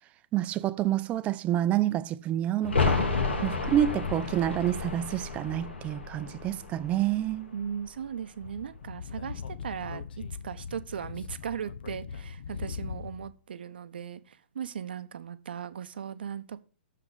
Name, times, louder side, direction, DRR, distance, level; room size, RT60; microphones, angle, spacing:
voice 1, 0.3-3.1 3.4-7.5, right 12 dB, 20° right, 0.5 m, -28 dB
sound 1, 2.6-8.2 8.5-8.6, left 4 dB, 75° left, 1.8 m, -31 dB
voice 2, 7.5-16.6, right 8 dB, 60° right, 0.7 m, -38 dB
Speech / Wind, 8.4-13.3, left 6 dB, 60° left, 0.6 m, -40 dB
6.9 x 5.9 x 7.0 m
figure-of-eight pair, 115°, 6 cm